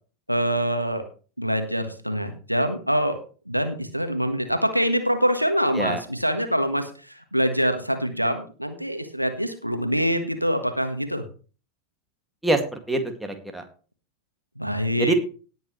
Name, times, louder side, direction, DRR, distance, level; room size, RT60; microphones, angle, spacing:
voice 1, 0.3-1.0 1.4-3.2 3.5-11.2 14.6-15.1, equal, 90° right, 7 dB, 1.6 m, -25 dB
voice 2, 12.4-13.6 15.0-15.1, right 2 dB, 5° right, 4 dB, 2.2 m, -25 dB
18.0 x 7.8 x 3.2 m, 0.37 s
figure-of-eight pair, 90°, 0 cm